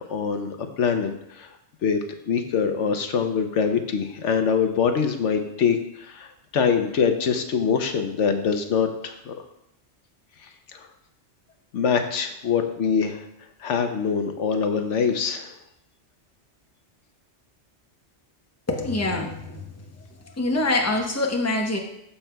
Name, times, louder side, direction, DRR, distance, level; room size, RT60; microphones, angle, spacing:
voice 1, 0.0-1.5 1.8-9.3 10.7-10.9 11.7-13.2 13.6-15.5, left 6 dB, 85° left, 6 dB, 1.1 m, -24 dB
voice 2, 18.7-19.6 20.4-21.8, left 2 dB, 15° left, 1 dB, 0.9 m, -24 dB
13.5 x 5.7 x 2.3 m, 0.78 s
omnidirectional pair, 1.2 m